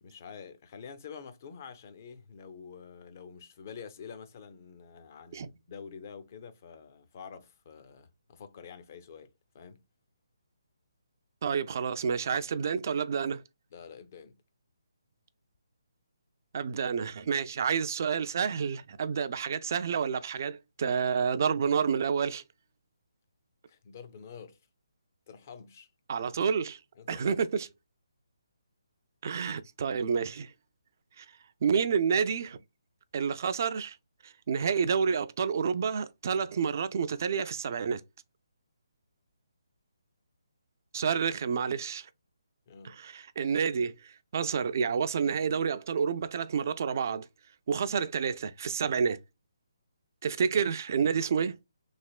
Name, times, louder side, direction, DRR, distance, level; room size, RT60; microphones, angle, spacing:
voice 1, 0.0-9.8 13.7-14.4 23.7-24.6 25.3-25.9 27.0-27.4 41.1-41.2 42.7-42.9, left 6 dB, 35° left, 0.5 m, -47 dB
voice 2, 11.4-13.4 16.5-22.4 26.1-26.8 27.1-27.7 29.2-30.5 31.2-31.3 31.6-32.6 33.1-34.0 34.2-38.0 40.9-42.1 42.8-47.3 47.7-49.2 50.2-51.6, right 6 dB, 40° right, 0.3 m, -29 dB
3.2 x 2.8 x 2.3 m
hypercardioid pair, 165°, 2 cm